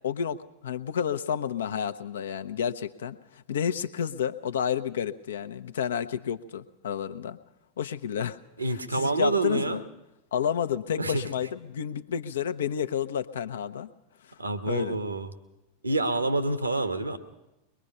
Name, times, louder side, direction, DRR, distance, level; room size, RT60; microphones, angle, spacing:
voice 1, 0.0-7.4 7.8-8.4 8.9-9.8 10.3-13.9 14.7-15.0, left 8 dB, 65° left, 11 dB, 0.9 m, -30 dB
voice 2, 8.6-9.8 11.0-11.3 14.4-15.3 15.8-17.2, right 2 dB, 80° right, 10 dB, 1.5 m, -27 dB
23.0 x 21.0 x 5.6 m, 0.95 s
figure-of-eight pair, 90°, 0 cm